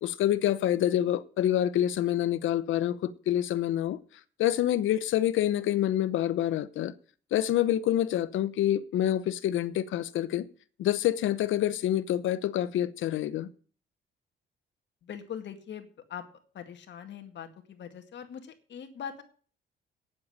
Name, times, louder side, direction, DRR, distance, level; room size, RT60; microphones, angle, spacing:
voice 1, 0.0-4.0 4.4-6.9 7.3-10.5 10.8-13.5, left 12 dB, 80° left, 0.9 m, -27 dB
voice 2, 15.0-16.2 16.5-19.2, left 8 dB, 65° left, 2.0 m, -42 dB
9.7 x 7.7 x 8.5 m
cardioid pair, 90°, 20 cm